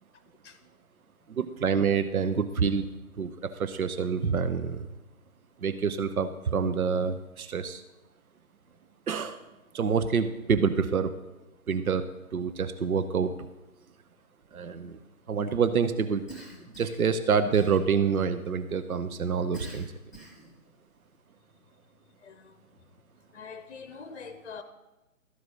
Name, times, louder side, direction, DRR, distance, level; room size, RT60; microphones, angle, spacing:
voice 1, 1.3-2.9 3.2-4.9 5.6-7.8 9.1-9.4 9.7-11.1 11.7-13.5 14.5-15.0 15.3-16.2 16.8-19.9, right 6 dB, 75° right, 0.7 m, -27 dB
Cough, 16.3-17.1 17.5-18.2 19.5-20.5, right 2 dB, ahead, 1.4 m, -46 dB
voice 2, 22.2-22.6 23.3-24.6, left 5 dB, 50° left, 0.7 m, -44 dB
13.0 x 4.7 x 6.2 m
figure-of-eight pair, 140°, 43 cm